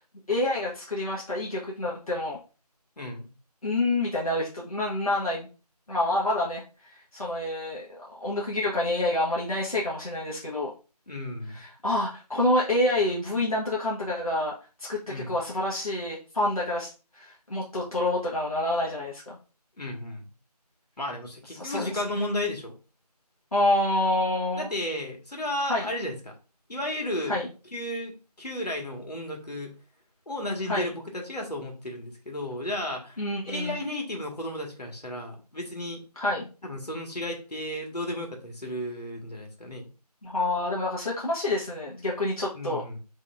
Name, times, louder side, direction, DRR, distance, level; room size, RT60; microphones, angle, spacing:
voice 1, 0.3-2.4 3.6-5.5 5.9-10.7 11.5-14.5 14.8-16.9 17.1-19.4 21.6-22.0 23.5-24.8 25.7-25.9 27.2-27.5 30.7-30.9 33.2-33.7 36.1-36.5 40.2-42.8, left 1 dB, 60° left, -4 dB, 1.6 m, -27 dB
voice 2, 3.0-3.3 11.1-11.6 15.1-15.4 19.8-20.3 21.0-22.7 24.6-26.4 26.7-27.4 27.7-29.7 30.3-33.2 33.5-36.0 36.6-39.9 42.5-43.0, left 1 dB, 75° left, 1 dB, 1.9 m, -33 dB
5.2 x 3.6 x 2.6 m, 0.33 s
figure-of-eight pair, 175°, 21 cm